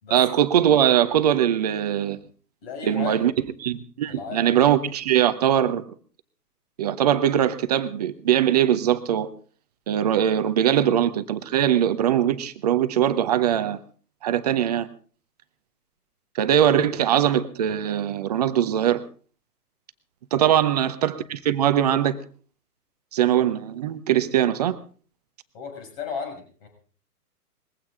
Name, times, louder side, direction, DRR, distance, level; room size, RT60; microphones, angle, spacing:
voice 1, 0.1-2.2 2.8-3.3 3.6-5.8 6.8-9.3 9.9-13.8 14.2-14.9 16.3-19.0 20.3-22.2 23.1-24.8, right 10 dB, 25° right, 11 dB, 0.7 m, -21 dB
voice 2, 2.6-3.2 4.1-4.7 20.3-20.5 25.5-26.7, left 6 dB, 35° left, 3 dB, 6.5 m, -35 dB
21.0 x 15.5 x 3.8 m, 0.41 s
figure-of-eight pair, 130°, 47 cm